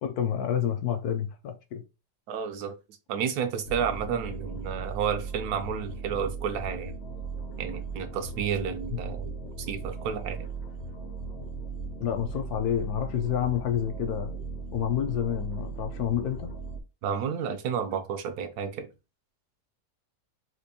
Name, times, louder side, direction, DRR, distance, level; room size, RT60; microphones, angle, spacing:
voice 1, 0.0-1.8 12.0-14.3 14.7-16.5, left 10 dB, 75° left, 1.1 m, -29 dB
voice 2, 2.3-2.7 3.1-6.9 7.6-9.3 9.7-10.5 17.0-18.9, right 7 dB, 75° right, 1.1 m, -31 dB
sound 1, 3.6-16.8, right 4 dB, 50° left, 0.9 m, -38 dB
4.4 x 2.6 x 2.7 m
omnidirectional pair, 1.7 m